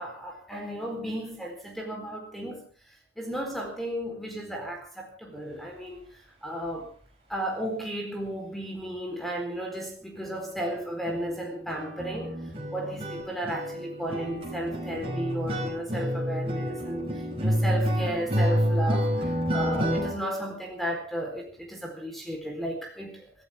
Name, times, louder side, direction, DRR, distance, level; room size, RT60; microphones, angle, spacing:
voice 1, 0.0-6.1 6.4-6.9 7.3-12.4 12.7-23.3, right 1 dB, ahead, 1 dB, 4.2 m, -34 dB
sound 1, 10.2-10.3 10.6-10.8 11.0-20.1, equal, 30° right, 5.4 m, -29 dB
25.5 x 15.0 x 3.7 m, 0.37 s
head